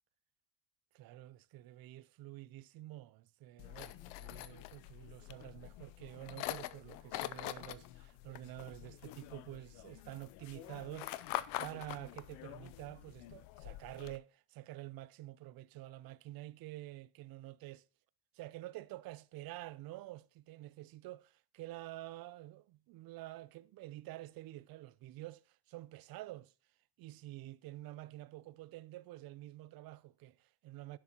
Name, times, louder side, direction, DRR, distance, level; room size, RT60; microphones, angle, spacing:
voice 1, 0.9-17.9 18.3-26.5 27.0-31.0, right 16 dB, 50° right, 0.5 m, -49 dB
sound 1, 3.6-14.2, left 16 dB, 85° left, 0.6 m, -45 dB
11.0 x 6.8 x 2.8 m
cardioid pair, 115°, 45 cm